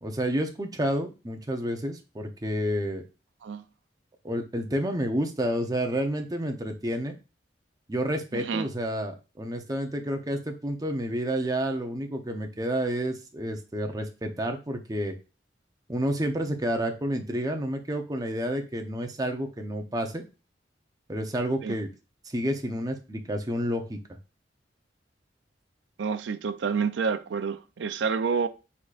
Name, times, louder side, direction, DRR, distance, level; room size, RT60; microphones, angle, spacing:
voice 1, 0.0-3.0 4.2-7.1 7.9-15.1 15.9-20.2 21.1-21.9 22.2-24.0, equal, 20° right, 0.7 m, -30 dB
voice 2, 8.3-8.7 21.6-21.8 26.0-28.5, right 5 dB, 85° right, 0.4 m, -28 dB
4.7 x 4.2 x 2.4 m
head